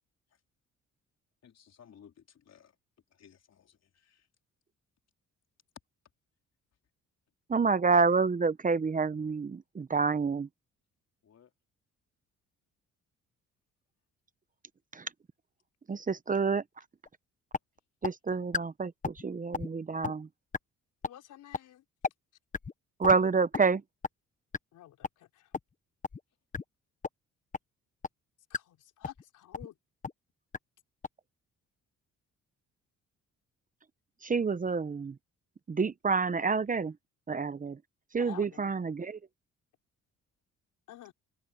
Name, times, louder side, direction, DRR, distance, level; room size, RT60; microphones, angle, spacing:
voice 1, 1.4-2.8 3.1-4.3 11.2-11.5, left 8 dB, 55° left, 4.2 m, -59 dB
voice 2, 7.5-10.5 14.9-15.1 15.9-16.6 18.0-20.3 23.0-23.8 34.2-35.2 35.7-36.9 37.3-37.8 38.1-39.2, right 4 dB, 25° right, 0.8 m, -28 dB
sound 1, 17.1-17.2 17.5-17.6 18.0-18.1 18.5-18.6 19.0-19.2 19.5-19.7 20.0-20.1 20.5-20.6 21.0-21.1 21.5-21.6 22.0-22.1 22.5-22.7 23.0-23.2 23.5-23.6 24.0-24.1 24.5-24.6 25.0-25.1 25.5-25.6 26.0-26.2 26.5-26.6 27.0-27.1 27.5-27.6 28.0-28.1 28.5-28.6 29.0-29.2 29.5-29.7 30.0-30.1 30.5-30.6 31.0-31.1, left 5 dB, 25° left, 1.1 m, -32 dB
voice 3, 21.0-21.8 24.7-25.5 28.5-29.8 38.2-38.7 40.9-41.1, left 12 dB, 80° left, 4.3 m, -50 dB
cardioid pair, 90°, 30 cm